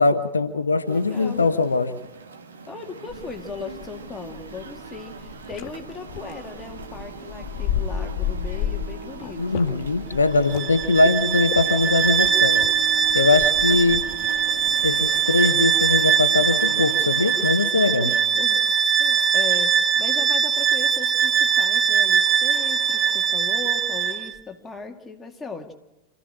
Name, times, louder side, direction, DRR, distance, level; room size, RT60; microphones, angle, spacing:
voice 1, 0.0-2.0 9.4-12.6 13.1-14.0 14.8-18.1, left 3 dB, 75° left, 11 dB, 0.9 m, -21 dB
sound 1, 0.8-17.5, right 5 dB, 70° right, 1.8 m, -39 dB
voice 2, 0.9-1.5 2.7-9.7 13.7-14.0 18.0-18.7 19.0-25.7, left 5 dB, 15° left, 3 dB, 2.1 m, -38 dB
sound 2, 3.1-15.2, left 8 dB, 45° left, 2.1 m, -34 dB
Bowed string instrument, 10.5-24.3, right 7 dB, 25° right, 1.0 m, -21 dB
27.0 x 14.0 x 8.7 m, 1.0 s
figure-of-eight pair, 90°, 0 cm